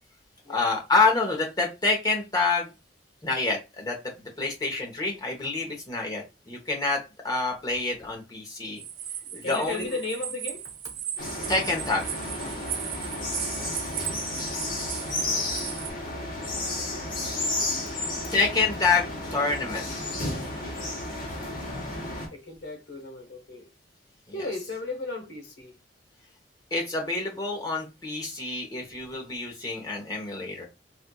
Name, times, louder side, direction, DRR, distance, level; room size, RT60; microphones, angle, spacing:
voice 1, 0.5-2.7 3.2-4.0 4.4-8.8 9.3-9.9 11.5-12.1 17.9-18.0 18.3-19.9 26.7-30.6, left 3 dB, 20° left, 0.9 m, -27 dB
sound 1, 8.8-15.9, right 10 dB, 55° right, 0.5 m, -36 dB
voice 2, 9.2-10.9 22.3-23.7 24.3-25.8 28.7-28.8, left 2 dB, 90° left, 1.0 m, -35 dB
sound 2, 11.2-22.3, left 2 dB, 55° left, 1.1 m, -32 dB
4.3 x 2.4 x 2.3 m
head